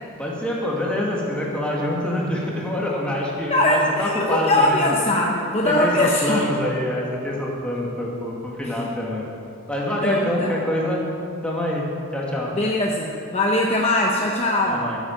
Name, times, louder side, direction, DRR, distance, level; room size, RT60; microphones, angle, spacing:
voice 1, 0.2-4.8 5.6-9.3 9.7-11.0 11.4-11.9 12.1-12.5 14.7-15.0, left 1 dB, 5° left, -4 dB, 2.4 m, -25 dB
voice 2, 3.5-6.4 8.6-8.8 10.0-10.6 12.5-14.9, left 1 dB, 30° left, -1 dB, 0.9 m, -21 dB
13.0 x 10.0 x 7.3 m, 2.5 s
head